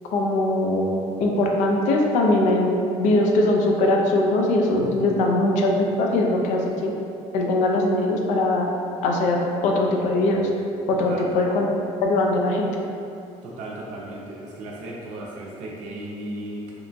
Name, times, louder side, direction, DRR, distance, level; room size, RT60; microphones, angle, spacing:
voice 1, 0.1-6.9 7.3-8.7 9.0-10.5 10.9-11.7 12.0-12.8, left 2 dB, 85° left, 0 dB, 0.4 m, -21 dB
voice 2, 4.8-5.2 10.9-11.3 13.4-16.7, right 1 dB, 75° right, -4 dB, 0.4 m, -36 dB
2.8 x 2.2 x 2.5 m, 2.6 s
cardioid pair, 135°, 12 cm